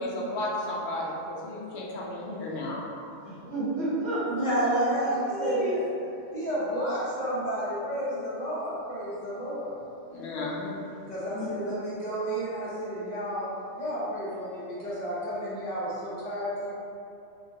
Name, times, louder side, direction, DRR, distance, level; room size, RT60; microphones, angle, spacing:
voice 1, 0.0-2.8 10.1-10.8, left 1 dB, 75° left, -5 dB, 0.9 m, -33 dB
voice 2, 3.2-5.8 11.3-11.5, right 1 dB, 70° right, -9 dB, 1.1 m, -32 dB
voice 3, 4.3-5.6 6.3-9.7 11.1-13.5 13.7-16.7, right 1 dB, 40° left, -10 dB, 0.8 m, -31 dB
3.1 x 2.2 x 2.7 m, 2.6 s
omnidirectional pair, 1.1 m